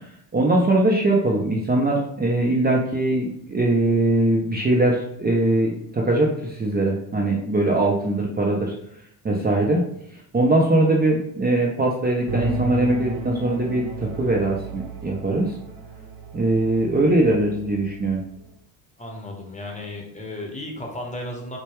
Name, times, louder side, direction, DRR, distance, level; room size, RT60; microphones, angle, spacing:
voice 1, 0.3-8.7 9.2-9.8 10.3-15.5 16.3-18.2, right 2 dB, 20° right, -1 dB, 0.7 m, -21 dB
sound 1, 12.3-18.5, right 1 dB, 70° right, 0.8 m, -34 dB
voice 2, 19.0-21.6, left 1 dB, 15° left, 0 dB, 1.0 m, -34 dB
4.3 x 2.3 x 3.0 m, 0.73 s
hypercardioid pair, 55°, 49 cm